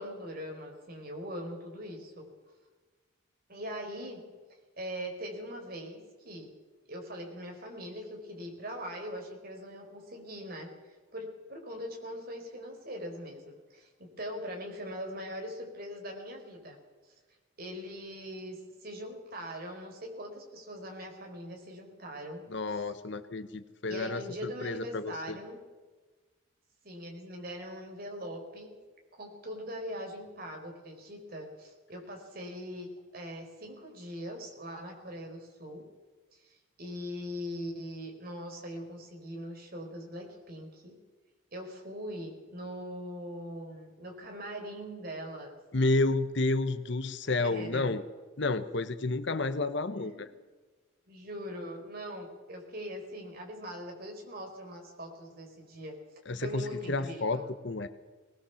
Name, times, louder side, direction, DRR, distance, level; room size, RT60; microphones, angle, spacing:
voice 1, 0.0-2.3 3.5-4.2 4.5-6.5 6.9-16.8 17.0-17.1 17.6-22.8 23.9-25.6 26.8-28.7 29.1-35.9 36.3-41.0 41.5-45.6 47.2-47.9 49.9-50.3 51.1-56.0 56.4-57.5, equal, 45° right, 2 dB, 4.6 m, -41 dB
voice 2, 22.5-25.4 45.7-48.0 48.4-50.3 56.3-57.9, left 2 dB, 55° left, 10 dB, 1.0 m, -31 dB
19.5 x 19.5 x 7.1 m, 1.3 s
head